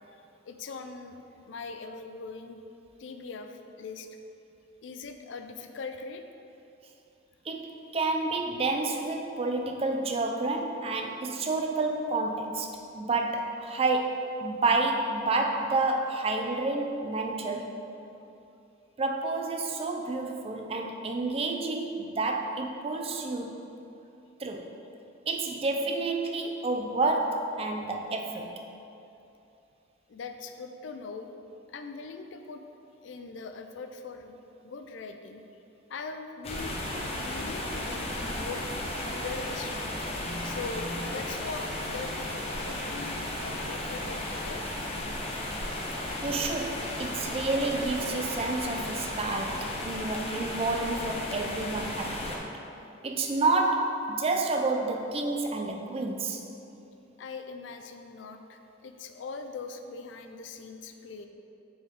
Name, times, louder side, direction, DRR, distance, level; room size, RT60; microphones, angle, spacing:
voice 1, 0.5-1.2 1.5-2.6 3.0-4.1 4.8-6.2 30.1-31.3 31.7-32.6 33.0-35.4 35.9-36.8 37.2-38.6 39.0-39.9 40.4-42.1 42.6-44.6 57.2-61.3, left 4 dB, 70° left, 7 dB, 0.4 m, -41 dB
voice 2, 7.5-17.7 19.0-23.6 24.4-24.7 25.3-28.5 40.2-41.1 46.2-52.4 53.0-56.4, right 3 dB, 30° right, 3 dB, 0.4 m, -29 dB
sound 1, 36.4-52.4, left 1 dB, 30° left, 0.7 m, -34 dB
6.5 x 4.4 x 3.6 m, 2.8 s
head